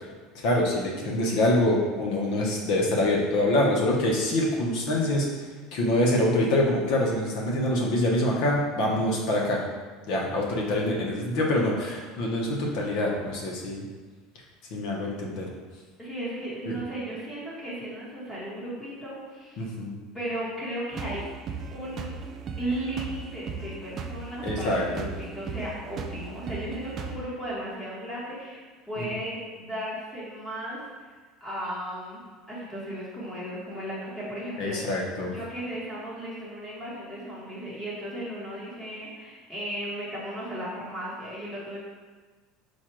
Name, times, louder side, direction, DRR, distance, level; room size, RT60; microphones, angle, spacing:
voice 1, 0.4-5.4 5.7-9.6 10.1-13.8 14.7-15.5 16.7-16.8 19.6-20.0 24.4-25.0 34.6-35.3, left 1 dB, 60° left, -2 dB, 0.9 m, -25 dB
voice 2, 16.0-19.7 20.1-21.3 21.7-22.2 22.5-28.6 28.8-31.1 31.4-32.2 32.5-34.8 35.3-41.8, right 1 dB, 10° left, -8 dB, 1.1 m, -35 dB
sound 1, 20.9-27.1, right 5 dB, 35° right, 0.3 m, -37 dB
4.5 x 2.3 x 4.5 m, 1.4 s
cardioid pair, 145°, 0 cm